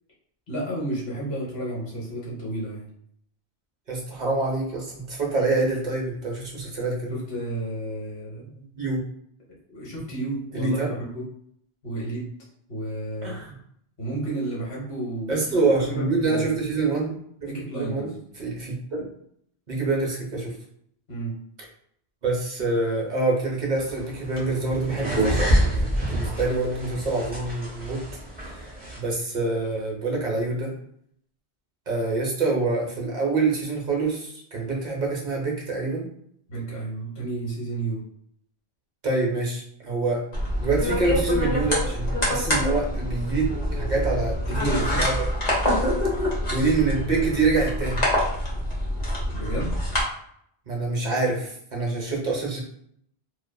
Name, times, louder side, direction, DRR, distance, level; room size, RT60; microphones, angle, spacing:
voice 1, 0.5-2.9 7.1-8.6 9.7-11.2 11.8-12.3 12.7-13.4 14.0-15.4 15.8-16.6 17.5-18.1 21.1-21.4 36.5-38.0 41.0-41.1 44.5-45.1 49.3-49.8, right 1 dB, 60° left, -5 dB, 1.2 m, -31 dB
voice 2, 3.9-7.1 8.7-9.0 10.5-10.9 13.2-13.5 15.3-19.1 19.7-20.6 22.2-28.0 28.4-30.8 31.9-36.1 39.0-40.2 40.6-44.6 45.0-45.3 46.5-48.1 50.7-52.6, right 3 dB, 50° right, -2 dB, 0.7 m, -26 dB
sound 1, 23.8-29.0, right 1 dB, 10° right, 0.8 m, -27 dB
sound 2, 40.3-50.0, equal, 45° left, 0.8 m, -26 dB
2.6 x 2.4 x 2.2 m, 0.68 s
omnidirectional pair, 1.1 m